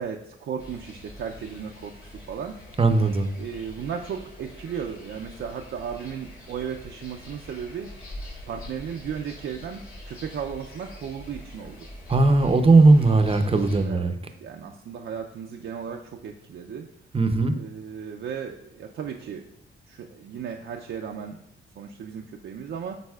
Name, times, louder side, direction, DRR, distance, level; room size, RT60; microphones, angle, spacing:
voice 1, 0.0-2.5 3.4-7.9 8.5-11.9 13.8-14.1 14.4-16.9 17.5-19.5 19.9-21.4 21.8-23.0, right 7 dB, 65° right, 1 dB, 0.5 m, -35 dB
sound 1, 0.6-13.8, left 1 dB, 75° left, 2.3 m, -44 dB
voice 2, 2.8-3.3 12.1-14.2 17.1-17.5, right 3 dB, 25° right, 7 dB, 0.6 m, -18 dB
10.5 x 4.1 x 2.4 m, 0.77 s
cardioid pair, 100°, 21 cm